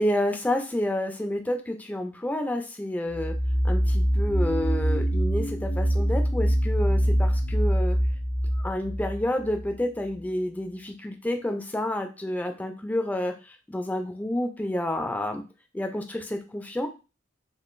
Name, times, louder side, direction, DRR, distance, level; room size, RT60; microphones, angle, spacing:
voice 1, 0.0-3.3 3.6-8.0 8.5-15.4 15.7-16.9, left 1 dB, 10° left, 5 dB, 0.3 m, -29 dB
sound 1, 3.1-9.7, equal, 60° left, 0.7 m, -24 dB
3.6 x 2.6 x 2.5 m, 0.30 s
head